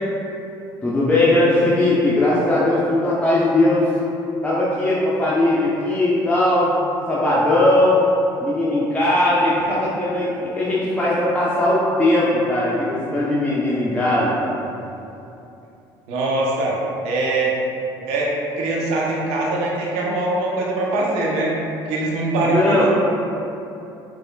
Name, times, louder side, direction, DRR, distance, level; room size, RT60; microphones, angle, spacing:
voice 1, 0.8-3.9 4.4-6.7 7.1-8.1 8.4-14.5 22.4-22.9, left 1 dB, 10° left, -8 dB, 0.7 m, -19 dB
voice 2, 16.1-16.8 17.0-17.6 18.1-21.5 21.9-22.9, right 2 dB, 75° right, -4 dB, 0.8 m, -22 dB
5.2 x 3.1 x 2.3 m, 2.8 s
hypercardioid pair, 65°, 11 cm